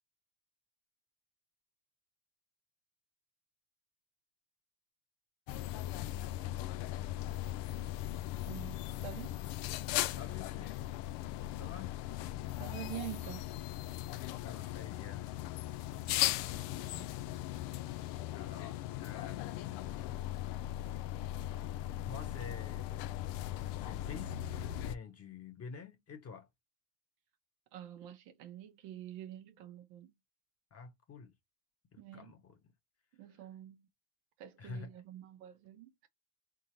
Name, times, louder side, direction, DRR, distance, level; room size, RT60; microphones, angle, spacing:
sound 1, 5.5-24.9, left 14 dB, 65° left, 0.6 m, -38 dB
voice 1, 8.5-9.4 12.6-13.5 16.2-17.2 27.7-30.1 32.0-32.3 33.1-33.9 34.4-36.1, right 13 dB, 75° right, 1.2 m, -47 dB
voice 2, 10.2-11.0 11.6-12.0 14.4-15.4 18.3-20.1 22.0-23.0 23.5-26.5 30.7-31.3 31.9-32.6 34.6-34.9, left 5 dB, 35° left, 1.3 m, -48 dB
3.9 x 3.8 x 3.1 m
supercardioid pair, 90°, 45 cm